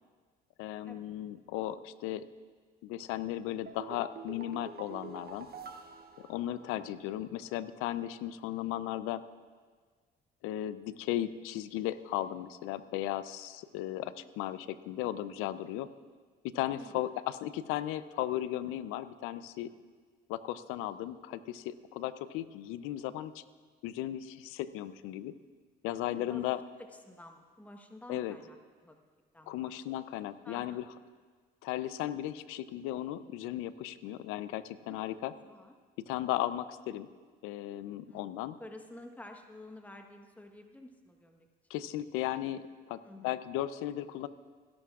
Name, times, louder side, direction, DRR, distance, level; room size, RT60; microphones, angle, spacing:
voice 1, 0.6-2.3 2.8-5.5 6.2-9.2 10.4-15.9 16.4-19.7 20.3-23.4 23.8-25.3 25.8-26.6 28.1-28.4 29.5-30.8 31.6-35.3 36.1-37.1 37.4-38.5 41.7-44.3, left 13 dB, 80° left, 15 dB, 0.6 m, -36 dB
sound 1, 3.7-7.1 7.4-7.5, right 5 dB, 45° right, 1.1 m, -47 dB
voice 2, 14.2-14.7 16.7-17.0 26.0-26.5 26.8-28.6 28.8-29.0 29.3-29.7 30.0-30.1 30.4-30.8 34.9-35.7 38.1-38.3 38.6-41.5 43.0-43.4, left 1 dB, 5° left, 4 dB, 1.2 m, -51 dB
30.0 x 11.5 x 2.4 m, 1.5 s
hypercardioid pair, 60°, 21 cm